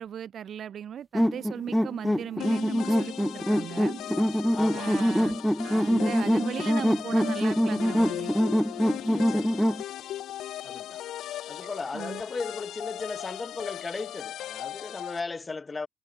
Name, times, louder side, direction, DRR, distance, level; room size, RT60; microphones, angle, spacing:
voice 1, 0.0-4.0 4.7-5.4 5.6-8.3 11.9-12.2, right 9 dB, 60° right, 1.2 m, -37 dB
sound 1, 1.1-9.8, equal, ahead, 0.7 m, -25 dB
sound 2, 2.4-15.2, left 12 dB, 85° left, 0.5 m, -37 dB
voice 2, 4.5-4.9 9.1-9.8 10.6-11.0 11.5-15.9, left 3 dB, 25° left, 1.3 m, -36 dB
cardioid pair, 105°, 0 cm